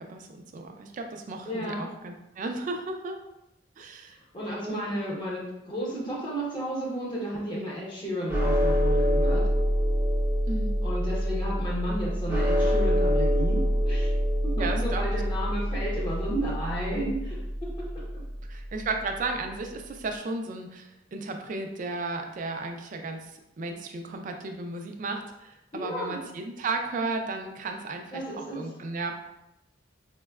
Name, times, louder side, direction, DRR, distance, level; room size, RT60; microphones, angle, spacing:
voice 1, 0.0-3.2 3.8-4.2 4.6-5.0 10.5-10.7 14.6-15.2 18.5-29.1, right 3 dB, 45° right, 4 dB, 0.3 m, -34 dB
voice 2, 1.5-1.9 4.3-9.5 10.8-14.1 14.4-17.9 25.7-26.2 28.1-28.6, equal, 25° left, -5 dB, 0.8 m, -33 dB
sound 1, 8.3-18.7, equal, 10° right, 0.7 m, -26 dB
4.3 x 2.1 x 2.3 m, 0.90 s
head